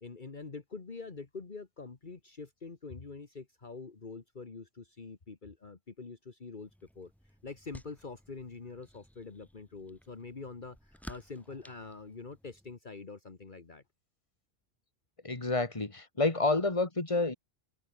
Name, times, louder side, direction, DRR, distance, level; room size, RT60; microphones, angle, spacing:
voice 1, 0.0-6.7 7.0-13.8, left 4 dB, 50° left, 1.8 m, -45 dB
sound 1, 6.6-12.7, equal, ahead, 2.4 m, -54 dB
voice 2, 15.2-17.3, left 3 dB, 30° left, 2.3 m, -29 dB
open air
omnidirectional pair, 1.1 m